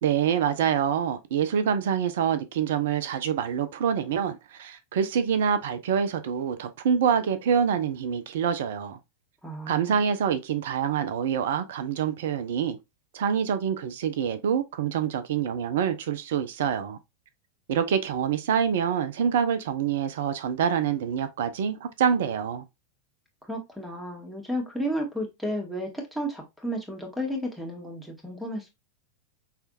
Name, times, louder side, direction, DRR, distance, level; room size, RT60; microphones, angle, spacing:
voice 1, 0.0-9.0 9.7-12.8 13.1-17.0 17.7-22.6, right 8 dB, 55° right, 0.7 m, -26 dB
voice 2, 9.4-10.0 23.5-28.7, equal, 5° right, 1.8 m, -32 dB
5.8 x 3.3 x 2.5 m
figure-of-eight pair, 90°, 0 cm